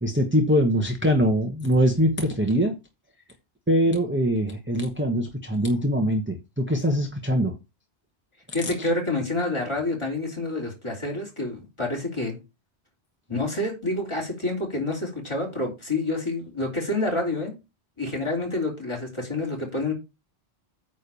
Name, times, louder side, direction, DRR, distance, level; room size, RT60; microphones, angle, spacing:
voice 1, 0.0-2.7 3.7-7.6 8.8-8.9, equal, 10° right, 1.1 m, -23 dB
voice 2, 8.5-12.4 13.3-17.6 18.0-19.9, left 2 dB, 25° left, 3.5 m, -28 dB
9.2 x 3.5 x 6.9 m
omnidirectional pair, 1.1 m